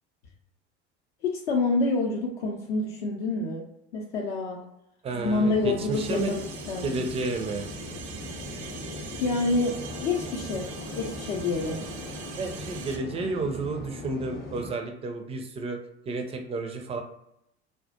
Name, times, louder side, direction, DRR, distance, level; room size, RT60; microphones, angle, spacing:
voice 1, 1.2-3.6 3.9-4.6 5.1-6.3 6.7-7.0 9.2-9.7 10.0-10.7 10.9-11.8, left 3 dB, 60° left, -2 dB, 0.6 m, -27 dB
voice 2, 5.0-6.3 6.8-7.7 11.7-11.8 12.4-15.8 16.1-17.0, right 3 dB, 20° right, 4 dB, 0.4 m, -31 dB
sound 1, 5.2-14.7, left 2 dB, 30° left, 0.7 m, -39 dB
sound 2, 5.9-13.0, right 6 dB, 75° right, 0.5 m, -43 dB
2.2 x 2.1 x 2.8 m, 0.80 s
figure-of-eight pair, 70°, 34 cm